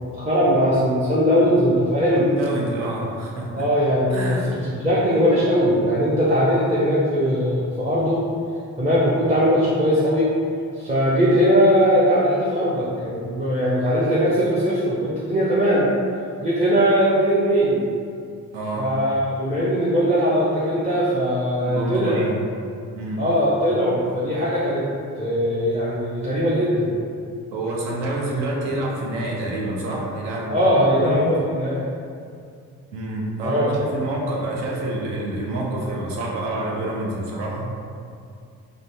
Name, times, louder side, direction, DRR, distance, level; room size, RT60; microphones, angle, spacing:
voice 1, 0.0-2.3 3.5-8.2 8.8-10.3 10.8-15.9 16.4-17.8 18.8-22.2 23.2-24.9 25.2-26.9 30.5-31.8 33.4-33.7, equal, 15° right, -9 dB, 0.6 m, -20 dB
voice 2, 2.2-3.7 4.1-4.5 18.5-18.9 21.6-22.3 22.9-23.2 27.5-31.3 32.9-37.7, right 1 dB, 65° right, -3 dB, 0.8 m, -27 dB
3.8 x 2.1 x 3.4 m, 2.4 s
figure-of-eight pair, 40°, 47 cm